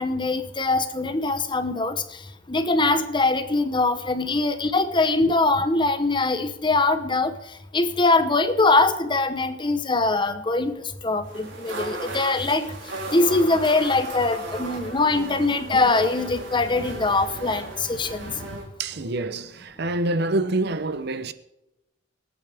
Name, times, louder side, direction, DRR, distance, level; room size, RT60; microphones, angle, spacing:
voice 1, 0.0-2.0 2.5-7.4 7.7-10.7 11.0-12.8 13.1-18.3, left 3 dB, 25° left, 1.0 m, -22 dB
sound 1, 11.2-18.6, right 2 dB, 85° right, 4.1 m, -35 dB
voice 2, 18.8-21.3, right 2 dB, 55° right, 0.7 m, -26 dB
25.0 x 8.9 x 3.5 m
head